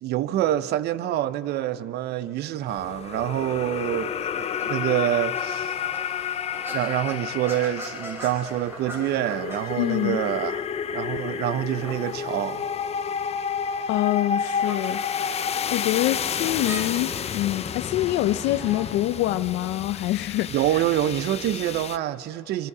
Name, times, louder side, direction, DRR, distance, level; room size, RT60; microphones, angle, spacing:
voice 1, 0.0-5.7 6.6-10.6 10.9-12.6 20.5-22.7, right 12 dB, 75° right, 0.7 m, -26 dB
sound 1, 2.7-22.0, left 7 dB, 40° left, 0.6 m, -31 dB
sound 2, 4.4-19.2, equal, 15° right, 5.5 m, -42 dB
voice 2, 9.8-10.2 13.9-15.0 15.7-20.5, left 15 dB, 85° left, 0.6 m, -25 dB
25.0 x 24.5 x 4.9 m
cardioid pair, 110°, 17 cm